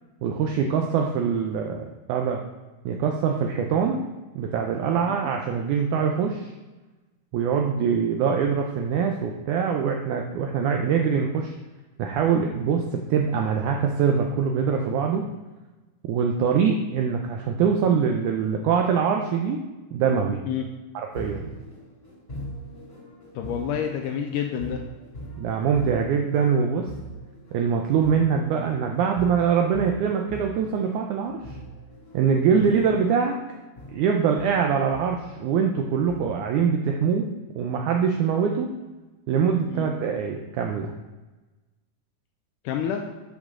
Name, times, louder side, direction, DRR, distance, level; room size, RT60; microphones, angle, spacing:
voice 1, 0.2-2.4 2.9-4.0 4.4-6.5 7.3-11.5 12.0-15.3 16.1-19.6 19.9-20.4 21.1-21.5 25.4-26.9 27.5-31.6 32.1-33.4 33.9-37.3 37.6-38.7 39.3-40.9, right 6 dB, 85° right, 3 dB, 1.7 m, -23 dB
sound 1, 21.1-36.3, right 1 dB, 20° left, 1.2 m, -41 dB
voice 2, 23.4-24.8 32.5-32.7 39.7-39.9 42.6-43.0, left 8 dB, 85° left, 3 dB, 1.9 m, -28 dB
8.2 x 6.2 x 3.7 m, 1.2 s
omnidirectional pair, 4.2 m